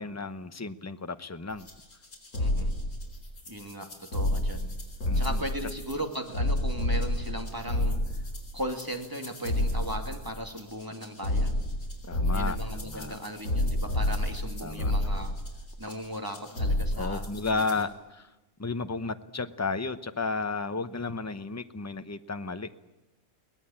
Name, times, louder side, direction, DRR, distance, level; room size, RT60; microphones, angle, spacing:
voice 1, 0.0-1.7 5.1-5.4 12.0-12.6 12.8-13.2 14.6-14.9 16.9-18.3 18.6-22.7, left 4 dB, 15° left, 10 dB, 0.7 m, -33 dB
sound 1, 1.6-17.8, left 1 dB, 75° left, 4.8 m, -30 dB
voice 2, 2.4-2.7 3.5-4.7 5.1-8.3 8.5-11.6 12.3-15.4 15.8-17.9, equal, 15° right, 3 dB, 2.6 m, -37 dB
23.0 x 18.5 x 8.8 m, 1.0 s
omnidirectional pair, 1.5 m